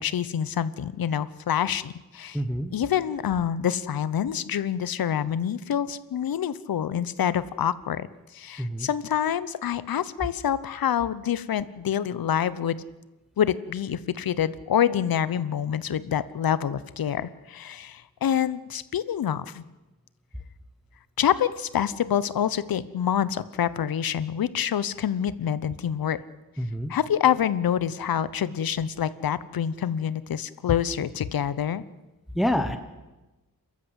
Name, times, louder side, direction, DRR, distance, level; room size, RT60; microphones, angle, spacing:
voice 1, 0.0-2.4 2.7-8.1 8.3-12.8 13.4-19.6 21.2-26.2 26.9-31.8, left 9 dB, 90° left, 17 dB, 1.0 m, -26 dB
voice 2, 2.3-2.7 8.6-8.9 26.6-26.9 32.3-32.8, equal, ahead, 8 dB, 1.2 m, -27 dB
29.5 x 13.5 x 8.1 m, 1.1 s
wide cardioid pair, 165°, 34 cm